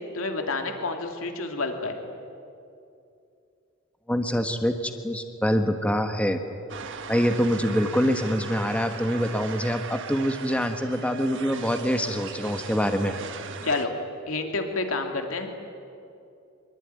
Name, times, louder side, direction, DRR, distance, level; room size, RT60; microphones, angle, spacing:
voice 1, 0.1-2.0 13.6-13.9 14.3-15.5, left 3 dB, 70° left, 4 dB, 2.7 m, -29 dB
voice 2, 4.1-6.4 7.1-13.1, equal, 5° left, 6 dB, 1.4 m, -25 dB
sound 1, 6.7-13.9, right 6 dB, 60° right, 1.5 m, -39 dB
25.0 x 23.0 x 9.5 m, 2.6 s
head